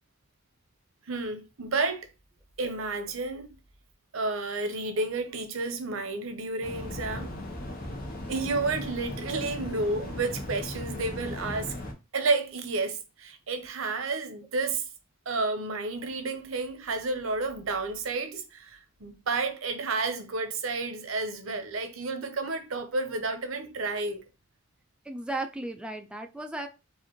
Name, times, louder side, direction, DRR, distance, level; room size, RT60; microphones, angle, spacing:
voice 1, 1.1-2.1 2.6-3.6 4.1-7.4 8.3-11.8 12.1-14.9 15.3-24.2, right 3 dB, 85° right, 0.8 m, -31 dB
sound 1, 6.6-11.9, left 1 dB, 45° left, 0.9 m, -37 dB
voice 2, 25.1-26.7, right 2 dB, 5° right, 0.3 m, -35 dB
4.8 x 2.5 x 3.0 m
head